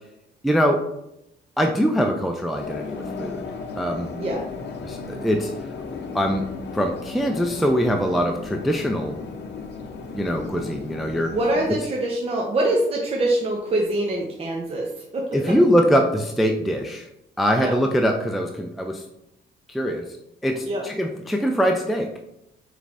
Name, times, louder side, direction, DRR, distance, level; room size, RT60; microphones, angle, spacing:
voice 1, 0.4-0.8 1.6-3.4 3.8-4.1 4.8-5.5 6.1-6.5 6.7-9.2 10.1-11.4 15.3-17.1 17.4-19.0 19.7-20.1 20.4-22.1, equal, ahead, 3 dB, 0.3 m, -22 dB
sound 1, 2.6-11.8, left 4 dB, 60° left, 0.6 m, -35 dB
voice 2, 11.3-15.5 17.6-17.7 20.6-20.8, right 1 dB, 30° right, -2 dB, 0.7 m, -24 dB
4.9 x 3.2 x 2.5 m, 0.83 s
cardioid pair, 90°, 20 cm